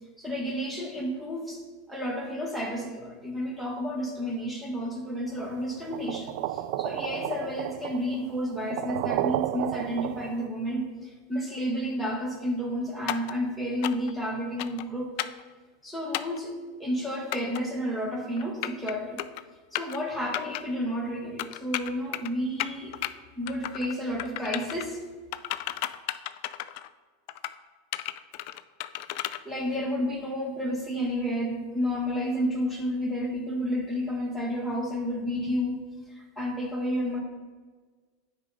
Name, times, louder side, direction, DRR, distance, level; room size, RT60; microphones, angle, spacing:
voice 1, 0.2-1.6 1.9-15.1 15.8-16.5 16.8-19.2 19.7-23.0 23.4-25.0 29.4-35.8 36.1-37.2, equal, 5° right, 0 dB, 1.6 m, -31 dB
sound 1, 5.9-10.5, right 13 dB, 60° right, 0.3 m, -32 dB
sound 2, 13.1-13.3 13.8-14.1 14.6-14.8 15.2-15.4 16.1-16.4 17.3-17.6 18.4-18.9 19.2-19.4 19.7-20.0 20.3-20.6 21.4-22.3 22.6-23.1 23.5-23.9 24.2-24.8 25.3-26.9 27.3-27.5 27.9-29.4, left 15 dB, 60° left, 0.3 m, -33 dB
9.3 x 3.9 x 4.8 m, 1.5 s
hypercardioid pair, 100°, 0 cm